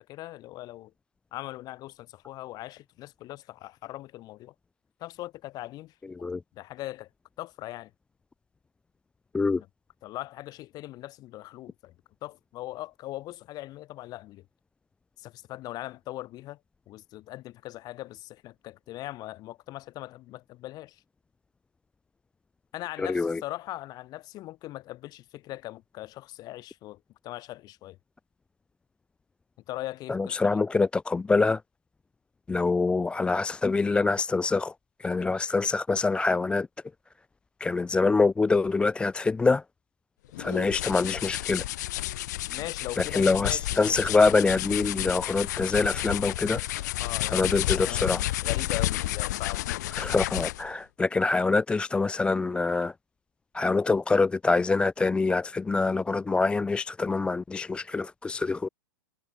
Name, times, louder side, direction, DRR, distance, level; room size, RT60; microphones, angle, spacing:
voice 1, 0.1-0.9 1.3-4.5 5.0-5.9 6.5-7.1 7.4-7.9 10.0-11.9 12.2-14.4 15.2-16.6 16.9-21.0 22.7-28.0 29.7-30.6 42.5-43.8 47.0-49.7, left 16 dB, 35° left, 7.4 m, -40 dB
voice 2, 23.0-23.4 30.1-31.6 32.5-34.7 35.0-36.7 37.6-39.6 40.4-41.6 43.0-46.6 47.3-48.2 50.0-52.9 53.5-58.7, left 3 dB, 10° left, 0.4 m, -25 dB
sound 1, 40.3-50.7, left 15 dB, 60° left, 2.9 m, -31 dB
figure-of-eight pair, 100°, 11 cm